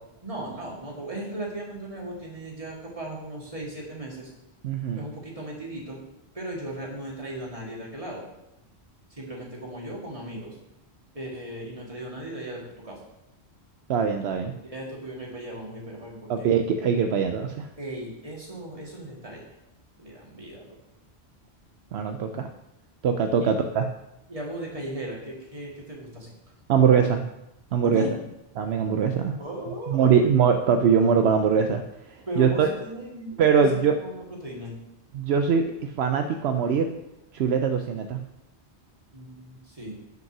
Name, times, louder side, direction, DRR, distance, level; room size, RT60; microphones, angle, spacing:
voice 1, 0.2-4.3 4.9-6.0 6.3-8.3 9.1-10.6 11.1-13.0 14.4-16.5 17.8-19.5 20.0-20.8 23.4-23.5 24.3-26.4 27.8-28.2 29.4-30.4 32.3-34.7 39.1-39.9, right 1 dB, 30° right, -2 dB, 2.3 m, -37 dB
voice 2, 4.6-5.0 13.9-14.5 16.3-17.7 21.9-22.5 23.0-23.9 26.7-27.2 27.7-28.0 28.6-29.4 29.9-31.8 32.1-32.7 33.4-33.9 35.1-36.9 37.3-38.2, right 6 dB, 75° right, 6 dB, 0.9 m, -22 dB
9.3 x 5.3 x 6.0 m, 0.90 s
omnidirectional pair, 1.1 m